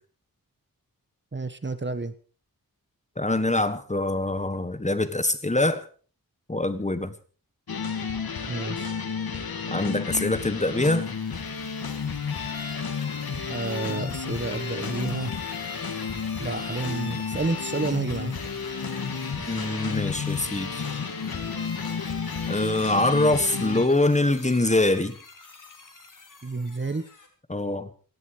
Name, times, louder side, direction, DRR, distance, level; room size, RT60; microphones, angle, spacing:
voice 1, 1.3-2.1 8.5-8.9 13.5-15.3 16.4-18.3 26.4-27.0, right 3 dB, 30° right, 1.3 m, -30 dB
voice 2, 3.2-5.9 6.5-7.1 9.7-11.1 19.4-20.8 22.5-25.2 27.5-27.9, left 2 dB, 20° left, 1.5 m, -24 dB
sound 1, 7.7-23.9, left 5 dB, 85° left, 2.9 m, -31 dB
sound 2, 10.6-27.3, left 3 dB, 60° left, 4.5 m, -49 dB
18.5 x 15.5 x 5.0 m
wide cardioid pair, 115°, 35 cm